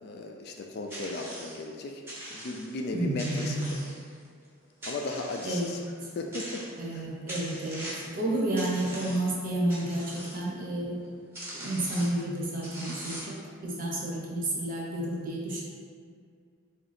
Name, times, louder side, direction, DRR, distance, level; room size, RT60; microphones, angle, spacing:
voice 1, 0.0-2.0 2.3-3.8 4.9-5.8 6.2-6.6 6.9-7.1, left 2 dB, 50° left, 3 dB, 0.3 m, -36 dB
sound 1, 0.9-1.6 2.1-2.8 3.2-4.3 4.8-5.8 6.3-7.0 7.3-8.2 8.6-9.3 9.7-10.4 11.0-11.1 11.3-12.2 12.6-13.5, equal, 10° right, 0.7 m, -41 dB
voice 2, 2.9-3.6 5.4-5.8 6.8-7.9 8.1-11.0 11.5-13.4 13.6-15.6, right 1 dB, 40° right, -4 dB, 0.7 m, -30 dB
3.8 x 2.5 x 4.1 m, 2.1 s
head